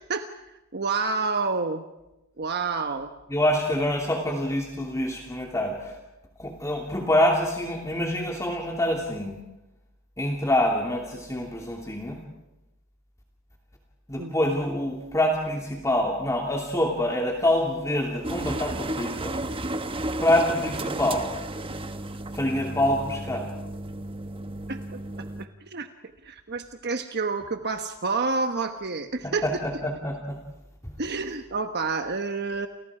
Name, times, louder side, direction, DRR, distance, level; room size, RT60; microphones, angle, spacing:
voice 1, 0.7-1.8 2.4-3.1 14.2-14.3 24.7-25.9 26.2-29.4 31.0-32.7, right 4 dB, 50° right, 7 dB, 1.2 m, -29 dB
voice 2, 3.3-6.0 6.4-9.4 10.2-12.2 14.1-19.4 20.2-21.3 22.3-23.5 29.2-30.4 30.8-30.9, left 1 dB, 15° left, 1 dB, 2.7 m, -26 dB
sound 1, 18.2-25.5, right 2 dB, 25° right, 1.2 m, -33 dB
30.0 x 29.0 x 5.0 m, 0.98 s
head